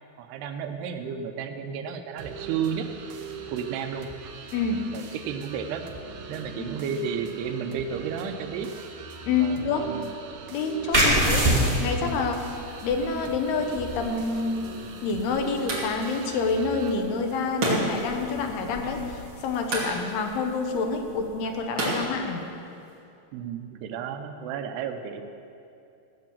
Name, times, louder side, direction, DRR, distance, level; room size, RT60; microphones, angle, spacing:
voice 1, 0.2-2.9 3.5-4.1 4.9-5.9 6.3-8.7 9.4-10.1 10.9-11.2 23.3-25.2, right 7 dB, 90° right, 6 dB, 2.9 m, -32 dB
sound 1, 2.2-17.0, right 6 dB, 70° right, 2.5 m, -41 dB
voice 2, 4.5-4.9 6.6-6.8 9.3-9.9 10.5-11.5 11.8-12.5 12.8-14.7 15.0-22.5, left 4 dB, 80° left, 4 dB, 3.1 m, -28 dB
sound 2, 10.9-22.2, equal, 15° right, 1.7 m, -30 dB
sound 3, 14.9-23.0, right 2 dB, 35° right, 3.1 m, -34 dB
16.0 x 8.7 x 7.4 m, 2.6 s
omnidirectional pair, 4.6 m